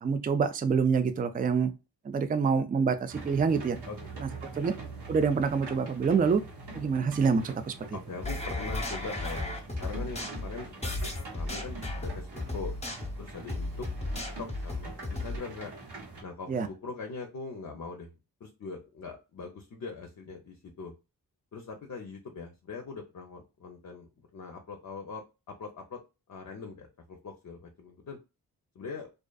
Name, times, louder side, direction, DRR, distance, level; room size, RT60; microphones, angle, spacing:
voice 1, 0.0-1.7 2.1-3.8 4.2-4.3 4.5-4.7 5.1-6.4 6.7-7.8 16.5-16.7, right 5 dB, 25° right, 0.3 m, -26 dB
sound 1, 3.1-16.2, right 3 dB, 80° right, 1.1 m, -44 dB
voice 2, 3.9-4.3 7.9-9.5 9.8-10.9 11.3-12.7 13.2-13.9 14.4-15.7 16.2-18.1 18.4-20.9 21.5-26.0 26.3-28.2 28.7-29.1, left 4 dB, 50° left, 0.6 m, -42 dB
sound 2, 8.2-15.4, left 2 dB, 15° left, 0.8 m, -35 dB
2.4 x 2.4 x 2.2 m
cardioid pair, 60°, 39 cm